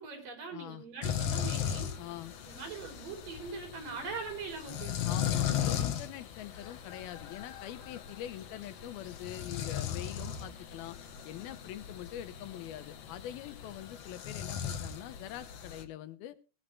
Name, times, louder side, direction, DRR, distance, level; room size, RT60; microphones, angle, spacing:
voice 1, 0.0-2.0 2.4-5.2, right 4 dB, 60° right, 5 dB, 5.3 m, -42 dB
voice 2, 0.5-0.9 2.0-2.4 5.1-11.0 11.2-16.4, left 13 dB, 80° left, 13 dB, 2.6 m, -44 dB
sound 1, 1.0-15.8, left 9 dB, 65° left, 1.6 m, -37 dB
19.0 x 10.5 x 3.2 m, 0.33 s
omnidirectional pair, 4.4 m